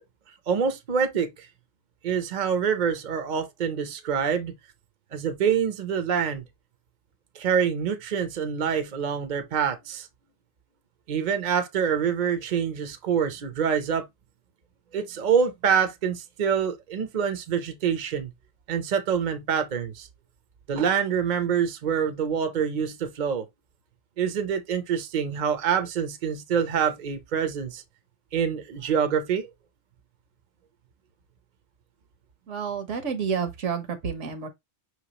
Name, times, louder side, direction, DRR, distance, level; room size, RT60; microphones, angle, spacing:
voice 1, 0.5-1.5 2.0-4.5 5.1-6.4 7.3-10.1 11.1-14.0 14.9-18.3 18.7-20.1 20.7-23.5 24.2-27.8 28.3-29.5, right 7 dB, 45° right, 0.7 m, -26 dB
voice 2, 32.5-34.5, right 6 dB, 70° right, 1.2 m, -29 dB
5.8 x 3.0 x 2.8 m
omnidirectional pair, 1.3 m